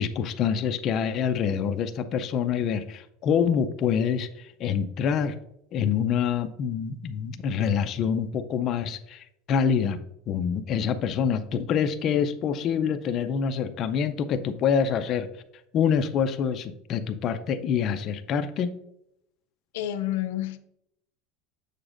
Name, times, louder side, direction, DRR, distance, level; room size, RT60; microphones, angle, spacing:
voice 1, 0.0-5.3 5.7-10.0 10.3-15.3 15.7-18.7, left 7 dB, 35° left, 8 dB, 0.4 m, -26 dB
voice 2, 19.7-20.6, left 13 dB, 90° left, 10 dB, 0.5 m, -29 dB
6.9 x 6.6 x 2.5 m, 0.79 s
cardioid pair, 160°, 0 cm